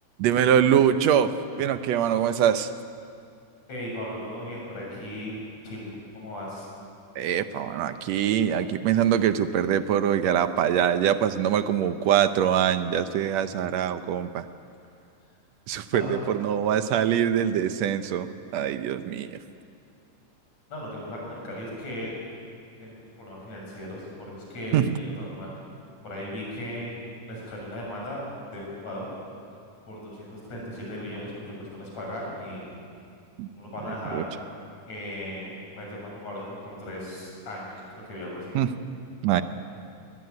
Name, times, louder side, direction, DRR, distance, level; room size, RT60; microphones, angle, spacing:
voice 1, 0.2-2.7 7.2-14.5 15.7-18.3 18.5-19.3 24.7-24.9 33.4-33.5 34.1-34.2 38.6-38.7 39.2-39.4, right 9 dB, 70° right, 10 dB, 1.8 m, -23 dB
voice 2, 3.7-5.4 5.6-6.7 15.9-16.2 20.7-22.1 22.8-25.5 26.0-26.9 27.3-28.2 28.5-29.1 29.9-31.3 31.6-32.7 33.5-34.3 34.9-38.6, left 1 dB, 55° left, -3 dB, 8.3 m, -37 dB
21.0 x 20.5 x 9.4 m, 2.4 s
omnidirectional pair, 3.6 m